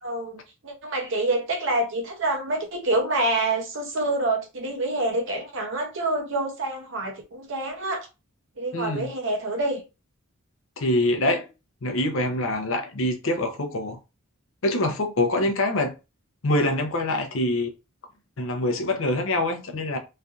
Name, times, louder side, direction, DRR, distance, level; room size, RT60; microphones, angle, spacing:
voice 1, 0.0-8.1 8.6-9.8, right 2 dB, 60° right, 0.7 m, -27 dB
voice 2, 8.7-9.1 10.8-11.5 11.8-14.0 14.6-15.9 16.4-17.7 18.4-20.0, left 1 dB, 70° left, 0.7 m, -25 dB
3.3 x 2.6 x 2.4 m
head